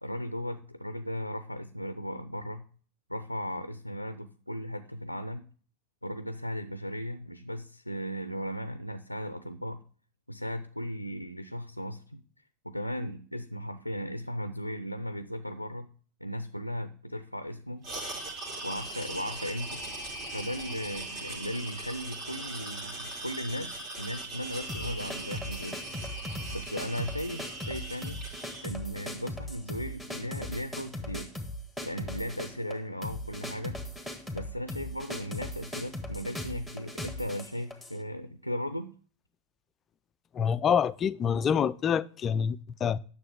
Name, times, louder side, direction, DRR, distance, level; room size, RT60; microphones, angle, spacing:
voice 1, 0.0-2.7 3.1-5.5 6.0-9.8 10.3-12.2 12.6-15.9 16.2-17.9 18.6-19.8 20.3-25.8 26.5-28.2 28.6-31.3 31.8-33.8 34.3-38.9, equal, 90° left, 0.5 m, -36 dB
sound 1, 17.8-28.7, right 2 dB, 40° right, 2.3 m, -40 dB
sound 2, 24.7-38.0, left 1 dB, 5° right, 1.4 m, -39 dB
voice 2, 40.3-43.0, left 7 dB, 25° left, 0.4 m, -26 dB
9.8 x 6.7 x 3.4 m
figure-of-eight pair, 90°, 0 cm